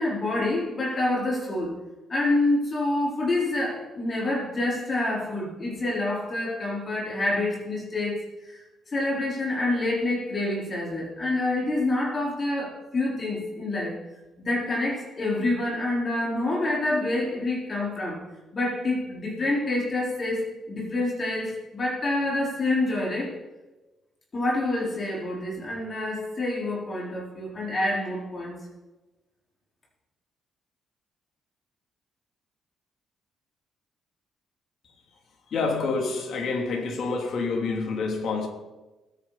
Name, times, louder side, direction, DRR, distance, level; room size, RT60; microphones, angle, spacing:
voice 1, 0.0-1.7 2.1-8.6 8.9-13.9 14.4-18.2 18.5-23.4 24.3-28.6, left 2 dB, 35° left, -4 dB, 4.6 m, -27 dB
voice 2, 35.5-38.5, left 4 dB, 65° left, 2 dB, 3.0 m, -27 dB
20.5 x 9.5 x 4.3 m, 1.1 s
cardioid pair, 90°, 0 cm